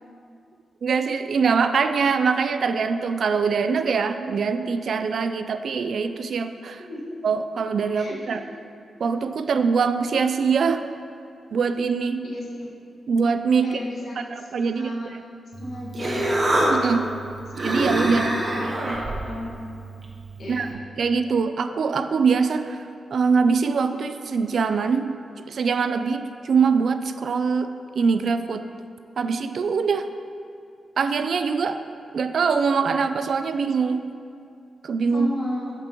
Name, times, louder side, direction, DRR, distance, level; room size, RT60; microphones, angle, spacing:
voice 1, 0.8-6.8 7.2-8.4 9.0-10.8 11.5-12.3 13.1-13.8 14.2-14.9 16.7-17.1 17.6-18.3 18.6-19.0 20.5-20.7 21.0-25.1 25.5-27.7 28.0-28.7 29.2-30.1 31.0-31.8 32.1-34.0 34.8-35.3, right 5 dB, 60° right, 9 dB, 0.3 m, -23 dB
voice 2, 6.8-7.2 7.9-8.4 12.2-12.7 13.6-15.1 15.6-16.3 18.0-19.6 20.4-20.7 35.1-35.7, left 1 dB, 65° left, -4 dB, 1.6 m, -34 dB
Human voice, 15.5-20.7, right 1 dB, 30° right, 1.1 m, -26 dB
13.0 x 5.2 x 3.0 m, 2.4 s
wide cardioid pair, 120°, 0 cm